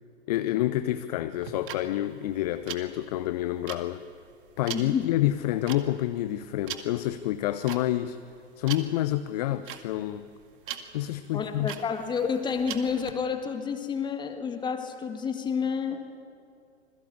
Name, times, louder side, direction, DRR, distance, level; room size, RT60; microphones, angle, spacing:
voice 1, 0.3-4.0 4.6-8.2 8.6-10.3 10.9-11.7, left 14 dB, 35° left, 13 dB, 0.7 m, -28 dB
sound 1, 1.4-13.1, right 10 dB, 45° right, 2.2 m, -41 dB
voice 2, 4.7-5.1 11.3-16.1, left 6 dB, 10° left, 7 dB, 1.9 m, -30 dB
26.5 x 22.0 x 8.4 m, 2.4 s
figure-of-eight pair, 110°, 35 cm